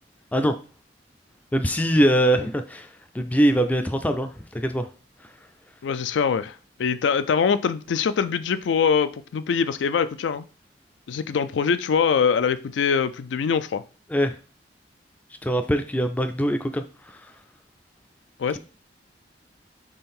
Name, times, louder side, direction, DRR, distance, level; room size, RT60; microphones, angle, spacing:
voice 1, 1.5-2.9 3.1-4.9 14.1-14.4 15.4-17.3, equal, 10° left, 0.3 m, -22 dB
voice 2, 5.8-6.5 6.8-10.5 11.1-13.8 18.4-18.6, left 6 dB, 80° left, 0.4 m, -23 dB
3.8 x 3.2 x 4.3 m
head